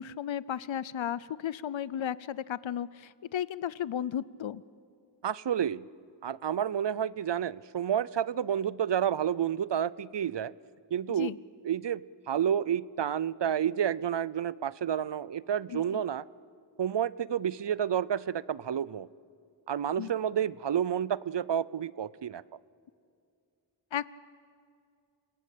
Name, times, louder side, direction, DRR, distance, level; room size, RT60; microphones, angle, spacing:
voice 1, 0.0-4.6 11.2-11.4 15.7-16.0 20.0-20.1 23.9-24.1, left 9 dB, 85° left, 19 dB, 0.6 m, -34 dB
voice 2, 5.2-5.9 6.2-10.5 10.9-11.3 11.6-12.0 12.3-16.2 16.8-19.1 19.7-22.4, right 9 dB, 65° right, 20 dB, 0.6 m, -30 dB
29.0 x 18.0 x 8.5 m, 2.4 s
wide cardioid pair, 60°, 45 cm